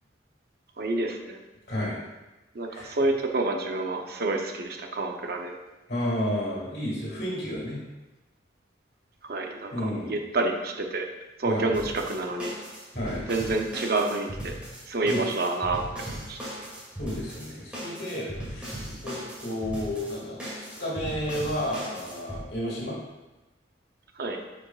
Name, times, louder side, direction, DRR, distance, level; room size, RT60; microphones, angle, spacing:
voice 1, 0.8-1.4 2.5-5.5 9.2-9.7 10.1-11.1 11.4-12.5 13.3-14.5 14.9-16.4 24.2-24.4, right 2 dB, 55° right, 3 dB, 0.7 m, -28 dB
voice 2, 5.9-7.8 9.7-10.1 11.4-11.7 12.9-13.3 15.0-15.2 17.0-18.7 19.0-20.4 20.7-23.0, left 1 dB, 55° left, -5 dB, 2.3 m, -31 dB
sound 1, 11.7-22.4, equal, 5° right, 2.3 m, -38 dB
9.7 x 5.0 x 2.4 m, 1.1 s
head